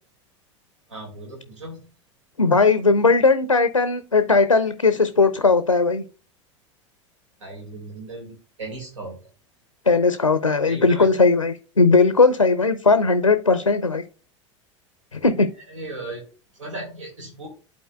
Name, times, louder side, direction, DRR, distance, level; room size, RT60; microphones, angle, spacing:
voice 1, 0.9-1.9 7.4-9.2 10.7-11.3 15.7-17.5, right 2 dB, 75° right, 0 dB, 1.9 m, -37 dB
voice 2, 2.4-6.0 9.9-14.0 15.1-15.5, left 4 dB, 90° left, 11 dB, 0.5 m, -18 dB
12.0 x 4.3 x 2.2 m, 0.36 s
figure-of-eight pair, 80°, 16 cm